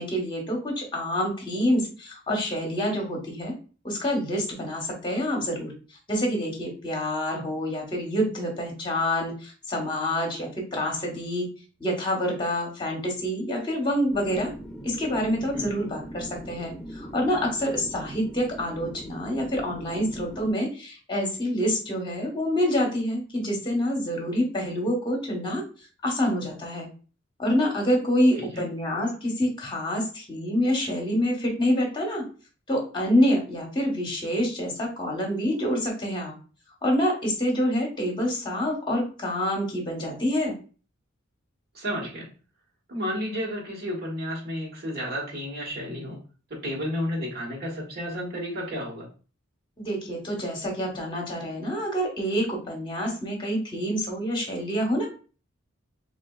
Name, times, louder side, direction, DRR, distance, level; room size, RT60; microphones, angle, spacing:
voice 1, 0.0-3.5 3.8-5.7 6.1-11.5 11.8-14.5 14.8-25.6 26.0-26.9 27.4-32.2 32.7-36.3 36.8-40.5 49.8-55.1, equal, 25° left, 1 dB, 1.0 m, -27 dB
sound 1, 14.1-20.5, right 1 dB, ahead, 0.5 m, -41 dB
voice 2, 41.7-42.3 42.9-46.2 46.5-49.1, equal, 50° right, -3 dB, 1.3 m, -32 dB
4.1 x 2.4 x 2.2 m, 0.37 s
head